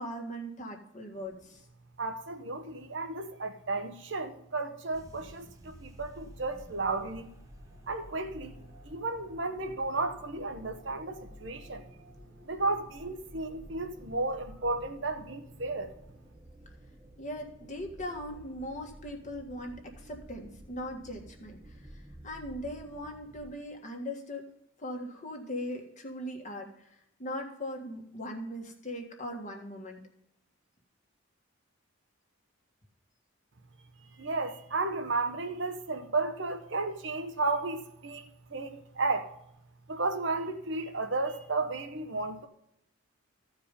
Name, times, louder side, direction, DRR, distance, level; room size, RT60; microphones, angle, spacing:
voice 1, 0.0-1.6 17.2-24.5 24.8-30.0, equal, 35° left, 1.6 m, -40 dB
voice 2, 2.0-7.3 7.9-8.6 8.8-11.8 12.4-15.9 34.2-39.3 39.9-42.5, right 3 dB, 55° right, 0.9 m, -33 dB
sound 1, 4.9-23.5, equal, 15° right, 0.9 m, -52 dB
14.5 x 4.8 x 5.1 m
head